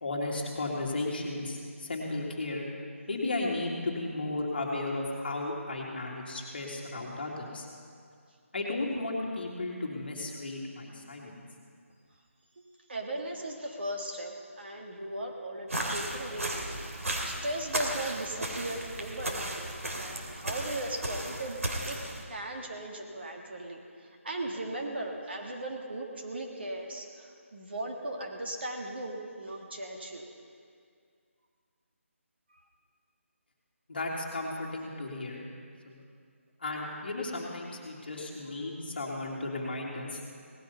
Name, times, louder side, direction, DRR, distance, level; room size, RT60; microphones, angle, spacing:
voice 1, 0.0-2.6 3.1-7.7 8.5-11.4 33.9-35.4 35.8-36.0 36.6-40.2, left 2 dB, 45° left, -1 dB, 2.3 m, -34 dB
voice 2, 12.9-16.5 17.1-19.7 20.0-21.6 21.8-22.0 22.3-30.2, right 1 dB, 50° right, 1 dB, 1.7 m, -37 dB
sound 1, 15.7-22.2, right 1 dB, 85° right, 2.8 m, -35 dB
18.0 x 12.5 x 5.6 m, 2.2 s
figure-of-eight pair, 175°, 8 cm